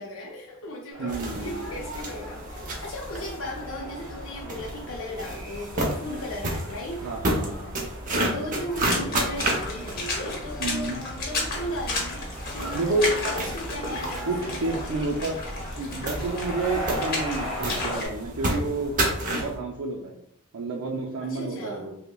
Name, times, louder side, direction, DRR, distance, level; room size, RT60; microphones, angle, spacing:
voice 1, 0.0-7.1 8.3-12.2 12.5-14.9 21.2-22.0, left 1 dB, 65° left, -2 dB, 0.5 m, -36 dB
sound 1, 0.9-18.0, equal, 5° left, 1.4 m, -40 dB
voice 2, 1.0-1.6 6.9-7.8 10.6-11.0 12.7-13.1 13.9-14.0 14.3-15.4 15.8-19.0 19.3-20.2 20.5-22.0, right 3 dB, 85° right, -2 dB, 0.5 m, -30 dB
sound 2, 1.1-19.6, right 1 dB, 35° right, 0.7 m, -32 dB
Water / Splash splatter, 8.7-18.1, left 2 dB, 45° left, 0.9 m, -33 dB
5.5 x 2.1 x 2.2 m, 0.74 s
head